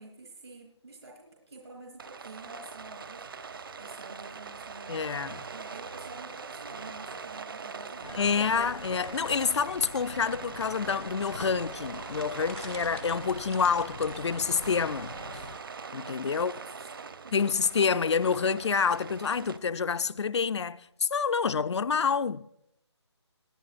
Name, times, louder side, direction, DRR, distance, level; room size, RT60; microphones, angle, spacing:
voice 1, 0.0-5.2 5.5-8.7 16.3-17.5, right 3 dB, 70° right, 2.9 m, -49 dB
Rain, 2.0-19.6, right 5 dB, 50° right, 0.8 m, -42 dB
voice 2, 4.9-5.4 8.1-15.4 15.9-16.5 17.3-22.4, left 6 dB, 70° left, 0.5 m, -28 dB
sound 1, 8.0-15.6, left 3 dB, 90° left, 1.5 m, -45 dB
sound 2, 8.8-9.3 10.3-10.4 10.6-10.7 11.8-14.2, equal, 5° right, 0.3 m, -48 dB
20.5 x 11.0 x 2.5 m
figure-of-eight pair, 165°, 15 cm